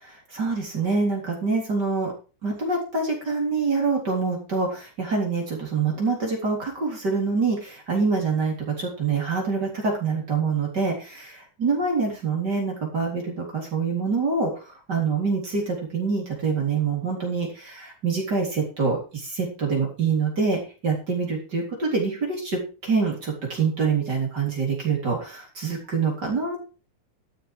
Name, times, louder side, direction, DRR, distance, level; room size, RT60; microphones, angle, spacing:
voice 1, 0.0-2.1 2.4-11.1 11.6-26.6, right 4 dB, 30° right, -1 dB, 4.1 m, -25 dB
13.0 x 7.3 x 5.0 m, 0.35 s
omnidirectional pair, 3.6 m